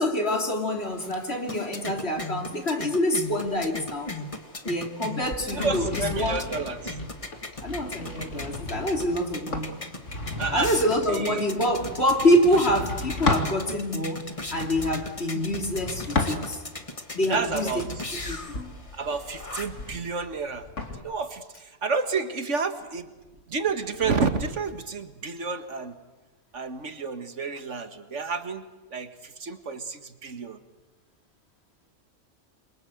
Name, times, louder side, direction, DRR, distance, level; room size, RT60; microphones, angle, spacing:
voice 1, 0.0-4.1 4.6-6.5 7.6-9.8 10.5-16.6 17.1-17.8 18.3-18.4, equal, 55° left, 3.3 m, -26 dB
sound 1, 0.7-19.9, left 2 dB, 25° left, 1.7 m, -38 dB
sound 2, 5.2-13.6 14.4-16.8 17.3-21.0, left 2 dB, 80° left, 2.9 m, -34 dB
voice 2, 5.5-6.9 10.4-10.7 11.1-11.6 17.3-17.9 18.9-20.7 20.9-23.1 23.5-26.0 26.5-30.6, right 4 dB, 75° right, 2.0 m, -30 dB
27.5 x 23.5 x 7.9 m
omnidirectional pair, 1.3 m